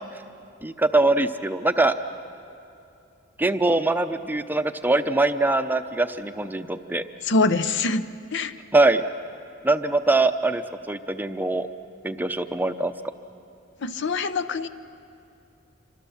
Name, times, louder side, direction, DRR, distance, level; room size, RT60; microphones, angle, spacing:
voice 1, 0.6-1.9 3.4-7.0 8.7-9.0 9.6-11.7 12.0-12.9, right 2 dB, 10° right, 9 dB, 0.6 m, -22 dB
voice 2, 7.2-8.0 8.3-8.5 13.8-14.7, left 3 dB, 60° left, 12 dB, 0.7 m, -24 dB
26.5 x 24.5 x 7.1 m, 2.7 s
head